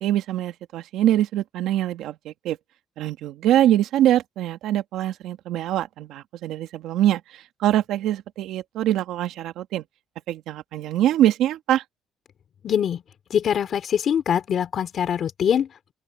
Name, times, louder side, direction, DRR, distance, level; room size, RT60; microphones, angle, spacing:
voice 1, 0.0-2.6 3.0-9.8 10.3-11.8, right 12 dB, 80° right, 2.0 m, -23 dB
voice 2, 12.6-13.0 13.3-15.9, left 8 dB, 50° left, 3.2 m, -23 dB
open air
cardioid pair, 130°, 0 cm